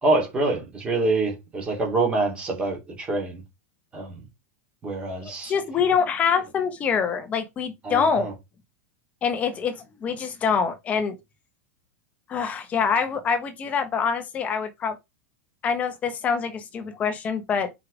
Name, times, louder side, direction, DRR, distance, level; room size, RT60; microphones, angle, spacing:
voice 1, 0.0-3.4 3.9-4.2 4.8-5.5 7.8-8.3, right 2 dB, 15° right, 2.7 m, -26 dB
voice 2, 5.2-8.3 9.2-11.2 12.3-15.0 15.6-17.7, left 6 dB, 15° left, 1.1 m, -25 dB
5.6 x 5.1 x 5.0 m
supercardioid pair, 175°, 8 cm